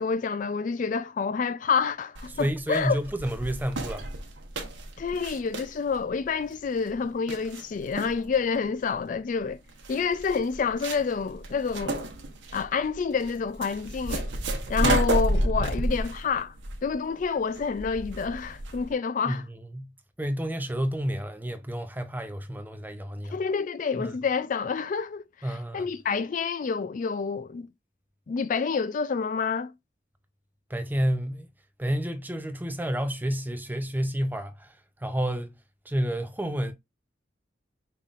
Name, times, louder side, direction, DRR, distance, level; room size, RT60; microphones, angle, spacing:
voice 1, 0.0-3.0 5.0-9.6 9.9-12.1 12.5-14.3 14.7-16.5 16.8-19.4 23.3-27.7 28.3-29.7, left 5 dB, 45° left, 0.3 m, -28 dB
sound 1, 2.2-18.9, right 1 dB, 85° right, 1.0 m, -32 dB
voice 2, 2.4-4.1 19.3-19.9 20.2-23.3 24.0-24.1 25.4-25.9 30.7-31.5 31.8-34.7 35.0-35.5 35.9-36.7, equal, 10° right, 0.5 m, -30 dB
5.5 x 3.5 x 2.5 m
head